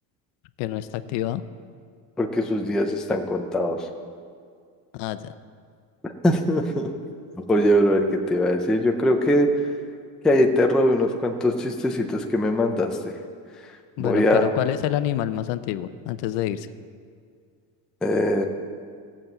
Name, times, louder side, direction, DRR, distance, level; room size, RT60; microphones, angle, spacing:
voice 1, 0.6-1.4 4.9-5.3 14.0-16.7, left 13 dB, 65° left, 12 dB, 0.8 m, -27 dB
voice 2, 2.2-3.9 6.0-6.9 7.5-9.5 10.2-13.1 14.0-14.5 18.0-18.4, left 1 dB, ahead, 2 dB, 0.4 m, -21 dB
16.5 x 7.3 x 7.8 m, 2.2 s
cardioid pair, 165°, 45 cm